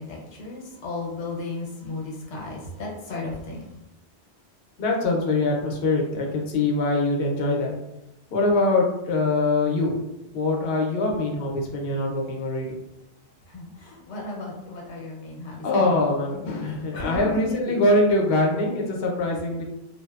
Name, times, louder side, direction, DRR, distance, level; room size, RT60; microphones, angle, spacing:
voice 1, 0.0-3.7 13.5-15.6 16.3-16.5 16.9-17.8 19.3-19.4, left 2 dB, 90° left, -2 dB, 1.0 m, -34 dB
voice 2, 4.8-7.7 8.3-10.0 10.3-12.8 15.6-19.6, left 2 dB, 65° left, -1 dB, 0.7 m, -23 dB
2.6 x 2.1 x 2.2 m, 0.86 s
omnidirectional pair, 1.2 m